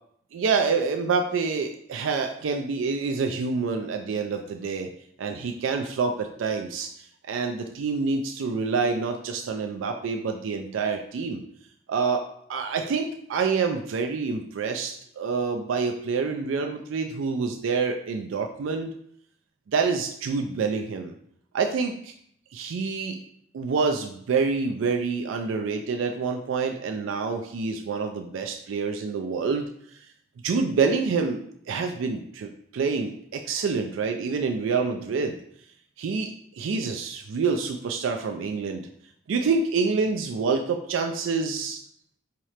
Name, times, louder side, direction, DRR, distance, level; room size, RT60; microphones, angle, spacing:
voice 1, 0.3-4.9 5.2-6.9 7.3-11.4 11.9-18.9 19.7-21.1 21.5-22.1 22.5-23.2 23.5-29.7 30.4-31.4 31.7-35.4 36.0-38.9 39.3-41.8, right 4 dB, 85° right, 5 dB, 0.4 m, -27 dB
4.7 x 2.9 x 3.1 m, 0.68 s
head